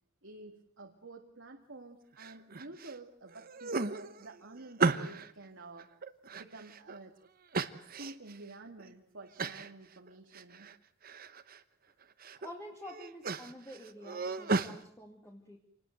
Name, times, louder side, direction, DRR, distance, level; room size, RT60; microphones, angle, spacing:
voice 1, 0.2-5.9 6.3-7.2 7.9-10.7, right 2 dB, 65° right, 2 dB, 2.1 m, -50 dB
sound 1, 2.2-2.9 3.3-5.3 5.8-7.0 7.5-8.4 8.8-8.9 9.4-9.7 10.1-10.8 11.0-11.6 12.0-12.5 12.8-14.7, right 4 dB, 45° right, 1.1 m, -35 dB
voice 2, 12.4-15.6, left 1 dB, 15° left, 1 dB, 2.6 m, -48 dB
26.5 x 20.0 x 7.9 m, 0.65 s
head